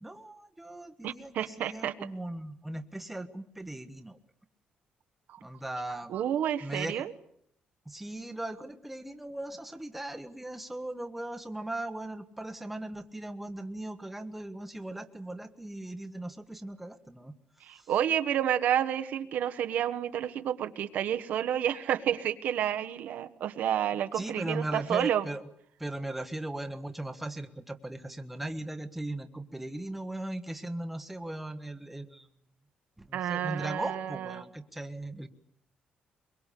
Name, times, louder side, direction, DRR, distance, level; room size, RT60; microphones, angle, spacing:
voice 1, 0.0-4.2 5.4-6.2 6.6-7.1 7.9-17.3 17.7-17.9 24.1-25.4 25.8-32.3 33.0-35.3, right 1 dB, 5° right, 7 dB, 1.3 m, -38 dB
voice 2, 1.0-1.9 5.3-5.4 6.1-7.1 17.6-25.3 33.1-34.4, right 10 dB, 65° right, 9 dB, 1.3 m, -30 dB
23.0 x 23.0 x 8.4 m, 0.68 s
cardioid pair, 160°, 3 cm